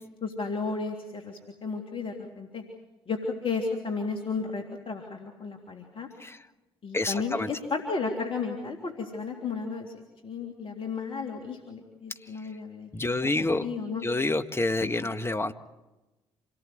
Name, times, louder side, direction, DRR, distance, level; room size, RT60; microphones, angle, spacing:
voice 1, 0.2-2.6 3.1-6.1 6.8-9.9 10.2-14.0 14.8-15.1, left 4 dB, 45° left, 2 dB, 3.1 m, -33 dB
voice 2, 6.9-7.5 12.9-13.7 14.0-15.5, left 2 dB, 20° left, 8 dB, 1.6 m, -28 dB
27.5 x 18.5 x 8.0 m, 1.1 s
hypercardioid pair, 45°, 13 cm